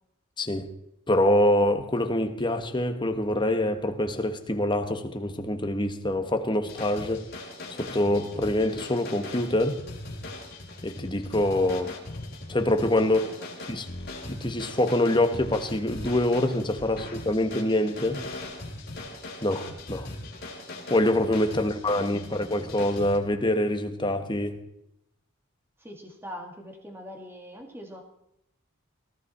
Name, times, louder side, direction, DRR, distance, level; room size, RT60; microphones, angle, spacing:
voice 1, 0.4-0.7 1.1-7.3 7.7-9.8 10.8-12.0 12.5-13.2 13.7-13.9 14.3-18.2 19.4-20.1 20.9-24.6, left 1 dB, 20° left, 1.3 m, -25 dB
sound 1, 6.6-23.2, left 2 dB, 45° left, 3.7 m, -40 dB
voice 2, 12.8-13.5 17.0-17.2 21.2-21.5 21.9-22.1 25.8-28.0, equal, 10° right, 2.2 m, -43 dB
19.0 x 15.5 x 4.3 m
head